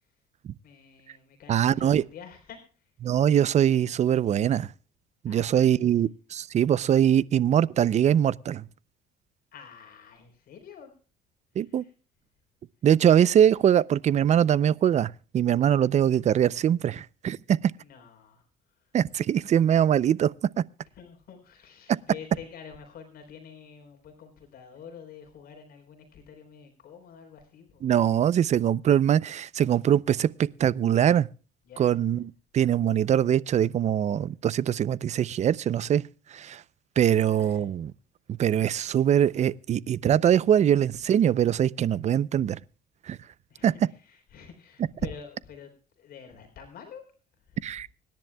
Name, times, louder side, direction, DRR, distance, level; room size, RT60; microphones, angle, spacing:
voice 1, 0.6-2.9 5.3-5.9 9.5-10.9 11.6-11.9 17.8-18.4 18.8-19.0 20.9-27.9 31.6-32.0 37.0-37.7 43.5-47.0 47.4-47.7, left 7 dB, 60° left, 3.8 m, -47 dB
voice 2, 1.5-2.0 3.0-4.7 5.2-8.6 11.6-11.8 12.8-17.7 18.9-20.3 20.6-20.7 27.8-30.3 30.6-31.3 31.8-36.0 36.3-36.6 37.0-37.9 38.4-42.6 43.1-43.2 43.6-43.7 47.6-47.9, right 9 dB, 45° right, 0.5 m, -22 dB
25.0 x 10.5 x 2.3 m
cardioid pair, 110°, 17 cm